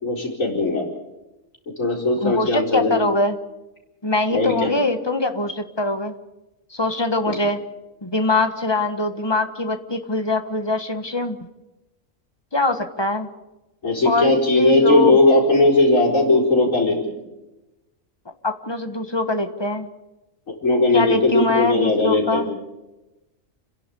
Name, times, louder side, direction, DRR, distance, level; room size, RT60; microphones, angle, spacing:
voice 1, 0.0-0.8 1.8-3.0 4.3-4.7 7.3-7.4 13.8-17.0 20.5-22.4, left 2 dB, 80° left, -2 dB, 5.0 m, -18 dB
voice 2, 2.2-3.4 4.0-6.1 6.7-7.6 8.0-11.4 12.5-13.3 14.0-15.2 18.4-19.9 20.9-22.5, left 2 dB, 20° left, 8 dB, 1.4 m, -23 dB
30.0 x 11.0 x 8.5 m, 1.0 s
omnidirectional pair, 1.3 m